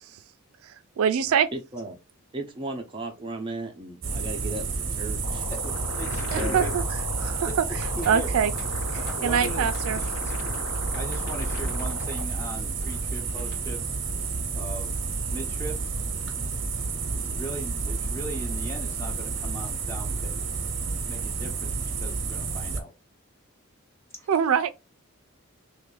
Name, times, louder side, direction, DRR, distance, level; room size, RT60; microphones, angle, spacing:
voice 1, 0.6-1.5 6.3-6.8 7.2-7.5 8.1-8.5 9.2-10.0 24.3-24.7, right 7 dB, 85° right, 0.3 m, -24 dB
voice 2, 1.5-2.0 2.3-5.5 6.4-6.7, right 1 dB, 25° right, 0.5 m, -35 dB
sound 1, 4.0-22.8, right 4 dB, 60° right, 0.7 m, -30 dB
sound 2, 5.2-12.2, left 6 dB, 80° left, 0.4 m, -38 dB
voice 3, 5.5-6.7 7.5-8.3 9.0-9.7 10.0-10.1 10.9-13.9 14.5-15.0 15.3-15.9 17.1-20.5 21.1-22.9 24.2-24.3, right 1 dB, 10° left, 0.8 m, -39 dB
sound 3, 8.0-8.2 8.5-13.9, left 2 dB, 40° left, 1.3 m, -46 dB
2.9 x 2.5 x 3.8 m
head